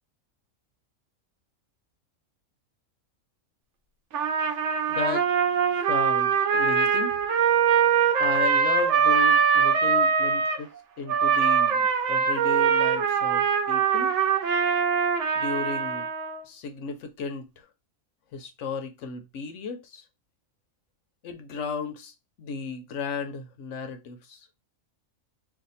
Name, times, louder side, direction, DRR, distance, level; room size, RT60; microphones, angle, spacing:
Trumpet, 4.1-10.6 11.1-16.4, right 7 dB, 65° right, 0.9 m, -23 dB
voice 1, 4.9-5.3 5.9-7.1 8.2-10.7 11.0-14.2 15.4-16.1 16.4-17.7 18.3-20.0 21.2-24.5, left 5 dB, 70° left, 0.9 m, -34 dB
2.6 x 2.4 x 4.0 m
omnidirectional pair, 1.4 m